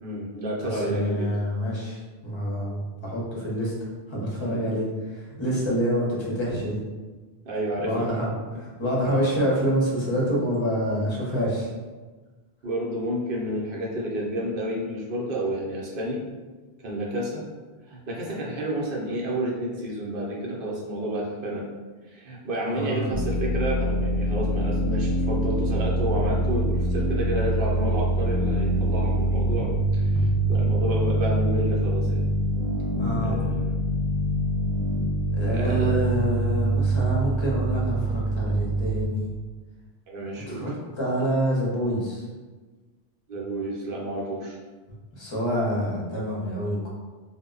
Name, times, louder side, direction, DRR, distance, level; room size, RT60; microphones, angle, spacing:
voice 1, 0.0-1.3 4.4-4.6 7.4-8.1 12.6-16.2 16.8-17.4 17.9-21.6 22.1-32.3 33.2-33.7 35.5-35.9 40.1-40.6 43.3-44.6, equal, 60° right, -3 dB, 0.8 m, -30 dB
voice 2, 0.6-3.7 4.1-6.8 7.8-11.7 22.7-23.1 33.0-33.4 35.3-39.3 40.5-42.2 45.1-46.9, equal, 30° left, -5 dB, 0.6 m, -27 dB
sound 1, 23.1-39.1, right 1 dB, 90° right, 0.8 m, -24 dB
2.1 x 2.0 x 3.7 m, 1.3 s
omnidirectional pair, 1.1 m